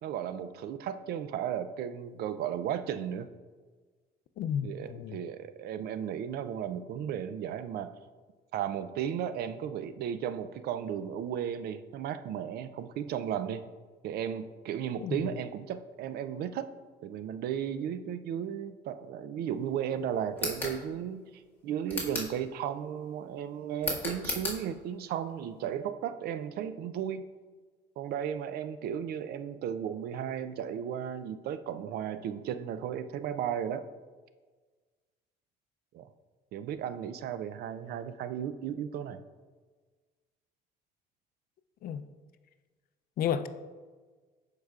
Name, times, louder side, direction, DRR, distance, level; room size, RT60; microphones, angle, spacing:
voice 1, 0.0-3.3 4.6-7.9 8.5-13.6 14.0-16.7 17.0-27.2 28.0-33.8 35.9-36.1 36.5-39.2, right 9 dB, 70° right, 12 dB, 0.4 m, -35 dB
voice 2, 4.4-5.2 15.0-15.3 41.8-42.0 43.2-43.5, left 8 dB, 60° left, 11 dB, 0.5 m, -32 dB
sound 1, 20.3-20.8 21.9-22.4 23.8-24.6, left 2 dB, 10° left, 1.8 m, -34 dB
13.0 x 4.8 x 2.4 m, 1.4 s
cardioid pair, 110°, 17 cm